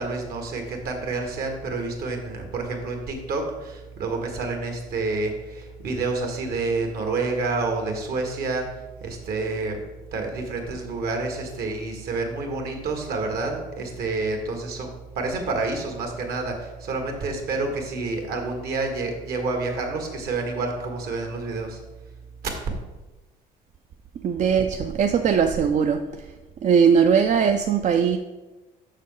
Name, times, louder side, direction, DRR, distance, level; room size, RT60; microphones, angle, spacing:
voice 1, 0.0-8.6 9.0-9.8 10.1-21.8 22.4-22.5, right 3 dB, 65° right, 3 dB, 1.6 m, -28 dB
voice 2, 24.2-26.0 26.6-28.2, right 7 dB, 45° right, 6 dB, 0.4 m, -20 dB
6.4 x 6.3 x 3.8 m, 1.1 s
cardioid pair, 110°, 17 cm